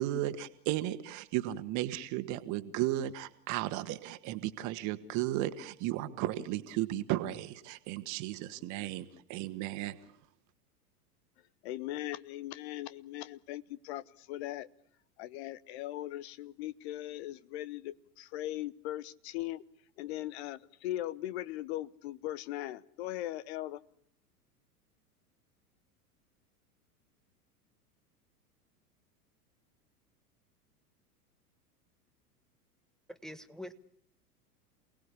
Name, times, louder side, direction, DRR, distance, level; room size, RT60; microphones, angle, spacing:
voice 1, 0.0-10.0, right 14 dB, 40° right, 12 dB, 1.8 m, -34 dB
voice 2, 11.6-14.7 15.2-19.6 20.0-23.8, left 14 dB, 45° left, 18 dB, 1.0 m, -39 dB
voice 3, 33.1-33.7, left 1 dB, ahead, 9 dB, 1.3 m, -44 dB
28.5 x 19.0 x 8.5 m, 0.67 s
figure-of-eight pair, 90°, 46 cm